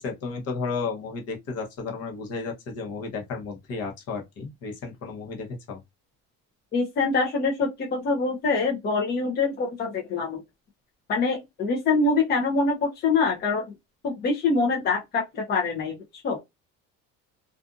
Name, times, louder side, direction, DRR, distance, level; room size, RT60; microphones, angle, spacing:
voice 1, 0.0-5.8, left 4 dB, 55° left, 1.0 m, -33 dB
voice 2, 6.7-10.4 11.1-13.7 14.0-16.0 16.2-16.4, left 4 dB, 35° left, 0.7 m, -24 dB
2.5 x 2.5 x 2.4 m
cardioid pair, 150°, 30 cm